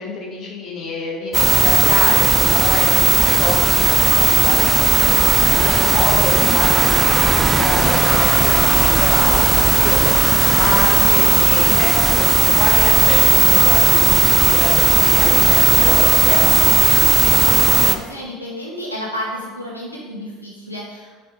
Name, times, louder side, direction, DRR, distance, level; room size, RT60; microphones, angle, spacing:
voice 1, 0.0-10.1 10.5-16.6, left 4 dB, 45° left, -1 dB, 1.2 m, -27 dB
sound 1, 1.3-18.0, right 3 dB, 25° right, 0.4 m, -15 dB
voice 2, 5.4-6.0 10.6-11.3 17.2-21.1, equal, 90° left, -4 dB, 0.7 m, -31 dB
4.9 x 4.5 x 4.5 m, 1.4 s
figure-of-eight pair, 65°, 0 cm